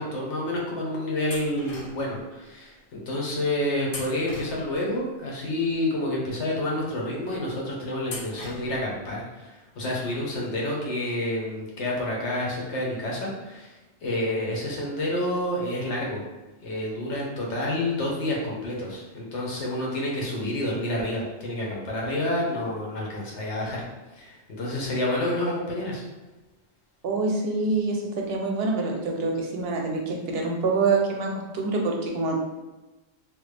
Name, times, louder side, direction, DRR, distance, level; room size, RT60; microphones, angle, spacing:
voice 1, 0.0-13.8 14.0-16.2 16.6-23.8 24.1-26.0, left 1 dB, 80° left, -3 dB, 1.1 m, -29 dB
sound 1, 1.3-2.2 3.9-5.0 8.0-9.0, left 2 dB, 60° left, 0.8 m, -40 dB
voice 2, 27.0-32.4, right 3 dB, 65° right, 0 dB, 0.7 m, -26 dB
3.2 x 2.0 x 3.2 m, 1.1 s
omnidirectional pair, 1.2 m